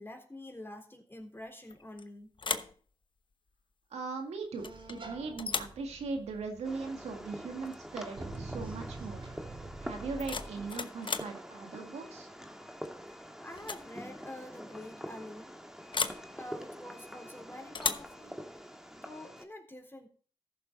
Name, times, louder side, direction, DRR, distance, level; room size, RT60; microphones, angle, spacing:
voice 1, 0.0-2.3 13.4-15.5 16.3-18.4 18.9-20.1, left 1 dB, 20° left, 4 dB, 3.7 m, -47 dB
sound 1, 1.7-2.0 2.4-2.8 4.6-5.0 5.4-5.8 7.7-7.8 8.2-8.5 10.0-11.4 12.8-13.1 13.5-13.9 14.1-14.2 15.9-16.3 17.7-18.1, left 4 dB, 50° left, 1.0 m, -35 dB
voice 2, 3.9-9.2 9.8-12.3, right 4 dB, 90° right, 4 dB, 2.0 m, -39 dB
sound 2, 4.6-10.7, right 3 dB, 50° right, 3.3 m, -46 dB
Fireworks, 6.6-19.5, equal, 5° right, 1.7 m, -46 dB
14.5 x 6.9 x 4.0 m, 0.42 s
cardioid pair, 45°, 11 cm